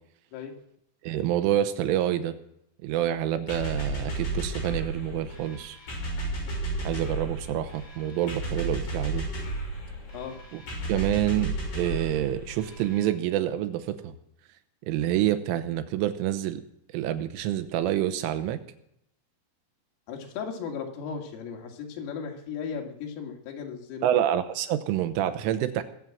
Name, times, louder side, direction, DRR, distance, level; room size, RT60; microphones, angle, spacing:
voice 1, 1.0-2.3 2.8-5.8 6.8-9.3 10.5-10.6 10.9-14.2 14.9-16.6 16.9-18.6 24.0-25.8, right 12 dB, 85° right, 10 dB, 3.5 m, -27 dB
sound 1, 3.5-13.1, right 2 dB, 55° left, 8.3 m, -33 dB
voice 2, 20.1-24.2, left 6 dB, 90° left, 2 dB, 4.8 m, -36 dB
22.0 x 7.8 x 7.3 m, 0.76 s
omnidirectional pair, 5.7 m